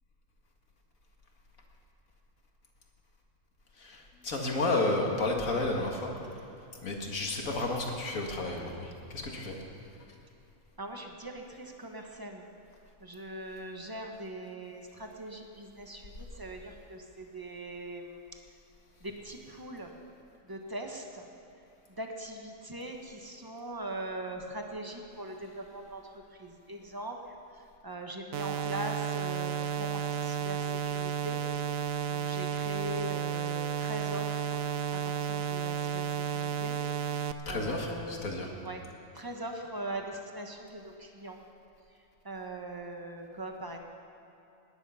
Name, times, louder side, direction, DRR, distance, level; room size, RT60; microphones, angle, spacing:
voice 1, 3.8-6.4 6.8-9.6 37.5-38.5, left 2 dB, 70° left, 1 dB, 2.2 m, -32 dB
voice 2, 10.8-12.5 13.0-18.4 19.0-19.9 20.4-21.3 22.0-31.4 31.8-34.5 34.9-38.3 38.6-38.8 39.1-41.4 42.2-43.8, right 1 dB, 15° right, 2 dB, 1.2 m, -41 dB
sound 1, 28.3-37.3, right 8 dB, 75° right, 1.0 m, -32 dB
19.0 x 10.5 x 5.7 m, 2.8 s
omnidirectional pair, 1.5 m